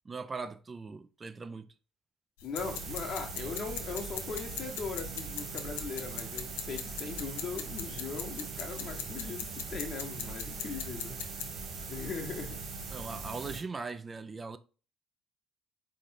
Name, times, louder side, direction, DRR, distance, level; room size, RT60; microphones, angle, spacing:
voice 1, 0.1-1.7 12.9-14.6, right 4 dB, 30° right, 0.4 m, -40 dB
sound 1, 2.4-11.5, left 9 dB, 75° left, 0.5 m, -42 dB
voice 2, 2.4-11.1 11.9-12.6, left 5 dB, 50° left, 1.1 m, -39 dB
sound 2, 2.6-13.6, right 4 dB, 55° right, 1.6 m, -41 dB
4.2 x 3.2 x 3.6 m
hypercardioid pair, 55°, 0 cm